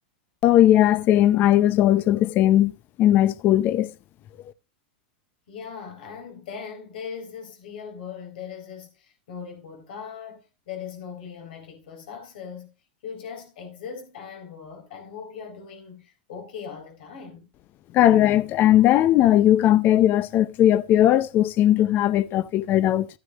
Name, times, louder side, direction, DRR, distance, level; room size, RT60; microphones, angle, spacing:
voice 1, 0.4-2.7 3.0-3.9 17.9-23.1, left 12 dB, 40° left, 0.7 m, -18 dB
voice 2, 5.5-12.7 13.0-17.5, left 6 dB, 70° left, 4.2 m, -39 dB
14.0 x 9.6 x 2.5 m
hypercardioid pair, 120°, 5 cm